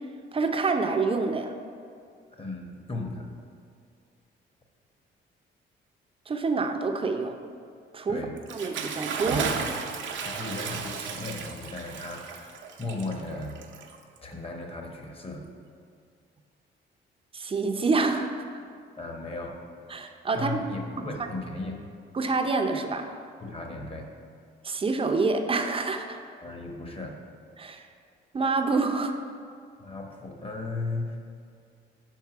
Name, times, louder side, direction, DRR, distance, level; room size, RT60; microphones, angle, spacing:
voice 1, 0.3-1.5 6.3-7.4 7.9-8.2 8.5-9.5 17.3-18.5 19.9-20.6 22.1-23.1 24.6-26.2 27.6-27.9 28.3-29.1, right 3 dB, 25° right, 5 dB, 0.5 m, -27 dB
voice 2, 2.3-3.3 8.1-8.3 10.2-12.5 12.8-13.6 14.2-15.4 19.0-19.6 20.3-21.8 23.4-24.1 26.4-27.2 29.8-31.2, left 2 dB, 30° left, 2 dB, 1.0 m, -36 dB
Bathtub (filling or washing) / Splash splatter, 8.4-14.3, right 6 dB, 70° right, 0.6 m, -34 dB
5.3 x 4.6 x 6.0 m, 2.3 s
cardioid pair, 90°, 20 cm